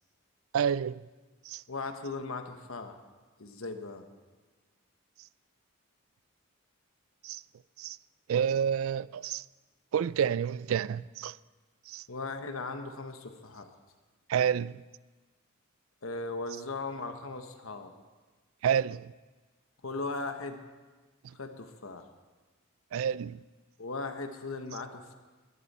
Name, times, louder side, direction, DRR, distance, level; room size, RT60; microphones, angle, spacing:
voice 1, 0.5-1.0 1.5-1.6 7.2-7.4 7.8-8.0 8.3-9.4 9.9-11.4 11.9-12.0 14.3-14.8 18.6-19.1 22.9-23.4, right 8 dB, 80° right, 0.3 m, -29 dB
voice 2, 1.7-3.0 3.4-4.0 12.1-13.7 16.0-17.9 19.8-20.6 21.3-22.0 23.8-25.1, left 3 dB, 80° left, 1.1 m, -38 dB
21.0 x 11.5 x 4.2 m
head